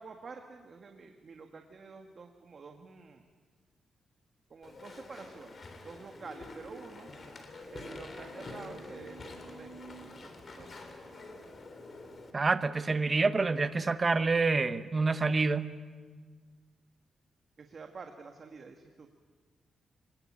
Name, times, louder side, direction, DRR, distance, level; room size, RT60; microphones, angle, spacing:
voice 1, 0.0-3.2 4.5-7.1 7.7-10.8 17.6-19.1, right 4 dB, 50° right, 1.6 m, -49 dB
Walk footsteps / Chatter / Squeak, 4.6-12.3, left 2 dB, 45° left, 3.6 m, -47 dB
voice 2, 12.3-15.7, right 3 dB, 30° right, 1.0 m, -27 dB
25.0 x 20.0 x 8.8 m
cardioid pair, 105°, 0 cm